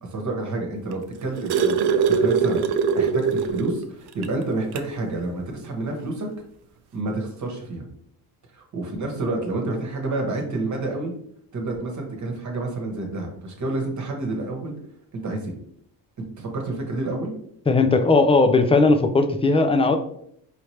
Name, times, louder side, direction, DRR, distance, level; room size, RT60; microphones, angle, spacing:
voice 1, 0.0-6.3 6.9-7.9 8.5-11.1 11.5-14.7 15.1-15.6 16.4-17.3, right 2 dB, 40° right, 2 dB, 1.2 m, -29 dB
sound 1, 0.9-3.8 4.2-4.3 4.7-4.9 6.0-6.1, right 6 dB, 60° right, 0.5 m, -22 dB
voice 2, 17.7-20.0, left 3 dB, 15° left, 8 dB, 0.4 m, -18 dB
4.9 x 2.8 x 3.2 m, 0.69 s
cardioid pair, 100°, 44 cm